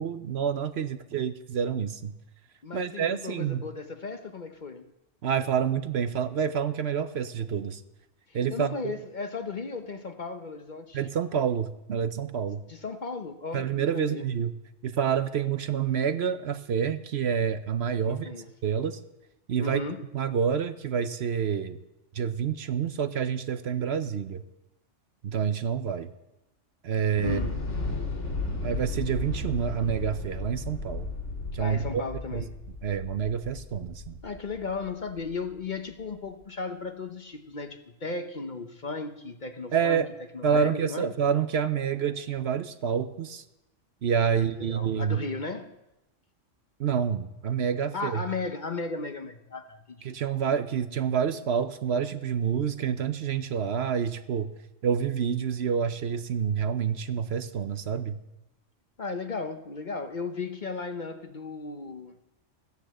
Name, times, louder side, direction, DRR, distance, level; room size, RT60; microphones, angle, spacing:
voice 1, 0.0-2.1 2.7-3.6 5.2-7.8 8.3-8.9 10.9-12.6 13.5-14.5 14.8-18.3 18.6-19.0 19.5-19.8 20.1-21.8 22.1-24.4 25.2-26.1 26.8-27.4 28.6-31.1 31.5-32.0 32.3-32.4 32.8-34.2 39.7-40.1 40.4-43.4 44.0-45.2 46.8-48.2 50.0-54.5 54.8-58.2, right 7 dB, 60° right, 0.9 m, -28 dB
voice 2, 2.6-4.9 8.3-11.0 12.7-14.3 18.1-18.5 19.6-20.0 27.2-27.6 31.6-32.5 34.2-40.0 40.3-41.1 44.3-45.8 47.9-50.0 59.0-62.2, left 4 dB, 45° left, 0.9 m, -36 dB
Thunder / Explosion, 27.1-35.3, left 3 dB, 70° left, 2.8 m, -34 dB
15.5 x 9.4 x 7.6 m
omnidirectional pair, 1.3 m